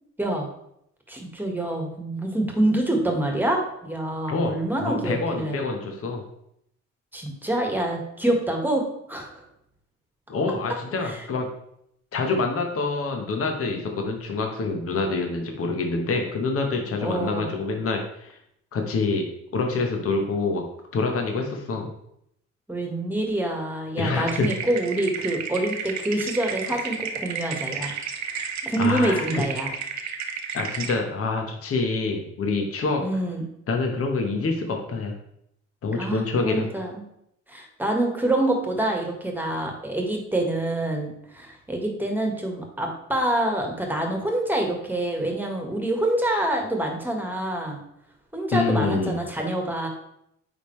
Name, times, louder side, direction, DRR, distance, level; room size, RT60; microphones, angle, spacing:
voice 1, 1.1-5.6 7.1-9.4 11.0-11.2 17.0-17.5 22.7-27.9 28.6-29.7 33.0-33.5 35.9-37.1 37.5-47.8 48.3-49.9, right 1 dB, 5° right, 1 dB, 1.6 m, -26 dB
voice 2, 4.8-6.2 10.3-11.5 12.1-18.4 18.7-19.2 19.5-20.6 20.9-21.9 24.0-24.5 28.8-29.2 30.5-33.0 33.7-35.1 35.8-36.7 48.5-49.2, left 3 dB, 50° left, 3 dB, 1.2 m, -26 dB
sound 1, 24.3-31.0, right 6 dB, 65° right, 0.8 m, -32 dB
9.1 x 3.7 x 3.2 m, 0.75 s
cardioid pair, 90°, 30 cm